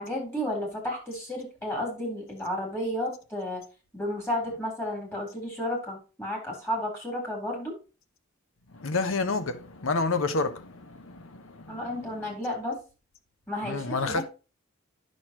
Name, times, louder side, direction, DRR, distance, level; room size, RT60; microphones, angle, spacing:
voice 1, 0.0-3.6 3.9-7.7 11.7-12.8 13.5-14.3, left 1 dB, 10° left, 3.8 m, -32 dB
voice 2, 8.7-11.9 13.6-14.2, left 3 dB, 75° left, 1.0 m, -29 dB
9.4 x 6.5 x 2.9 m
head